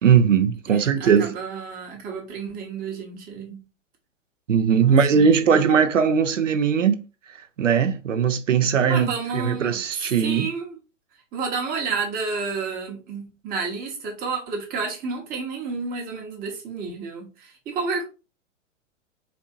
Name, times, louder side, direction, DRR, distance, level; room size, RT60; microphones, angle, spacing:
voice 1, 0.0-1.3 4.5-7.0 7.6-10.5, right 7 dB, 75° right, 0.6 m, -19 dB
voice 2, 0.7-3.6 4.8-5.7 8.9-10.8 11.3-18.0, right 4 dB, 25° right, 1.1 m, -31 dB
4.2 x 2.7 x 2.5 m
figure-of-eight pair, 105°, 38 cm